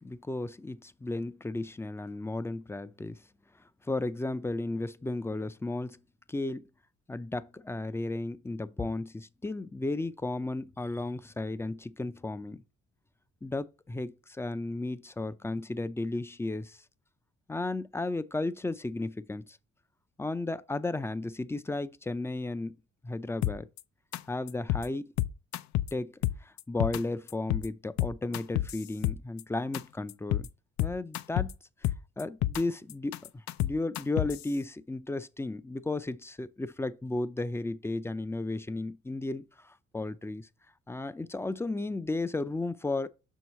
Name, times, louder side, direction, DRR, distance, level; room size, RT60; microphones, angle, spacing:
voice 1, 0.0-3.2 3.9-6.0 6.3-6.7 7.1-12.6 13.4-16.8 17.5-19.6 20.2-22.7 23.0-23.7 24.3-25.1 25.9-30.5 30.8-31.5 32.2-33.1 33.6-40.5 40.9-43.1, left 2 dB, 10° left, 0.4 m, -34 dB
sound 1, 23.4-23.8 24.1-24.2 24.5-24.9 25.2-25.9 26.2-27.0 27.3-27.7 28.0-29.4 29.7-29.8 30.1-30.5 30.8-31.5 31.8-32.6 32.9-34.4, left 15 dB, 65° left, 0.5 m, -29 dB
6.0 x 4.7 x 5.5 m
cardioid pair, 100°, 30 cm